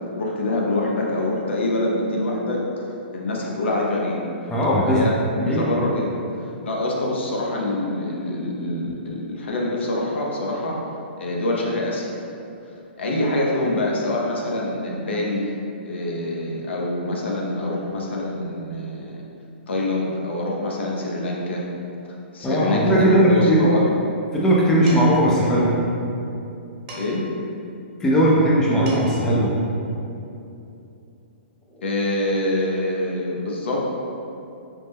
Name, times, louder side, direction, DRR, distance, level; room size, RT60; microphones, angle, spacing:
voice 1, 0.2-2.8 3.1-4.3 4.9-10.8 11.2-12.1 13.0-15.5 15.8-19.2 19.7-21.6 22.3-23.9 26.9-27.3 31.8-33.8, left 1 dB, 75° left, -2 dB, 0.6 m, -25 dB
voice 2, 4.5-5.0 5.4-5.6 22.4-23.7 24.3-25.7 28.0-29.5, right 1 dB, 10° left, -5 dB, 0.4 m, -18 dB
Dishes pots and pans, 24.9-25.3 26.9-27.4 28.5-28.6 28.9-29.3, right 2 dB, 30° right, 0.9 m, -38 dB
3.2 x 2.1 x 3.3 m, 2.8 s
hypercardioid pair, 145°, 6 cm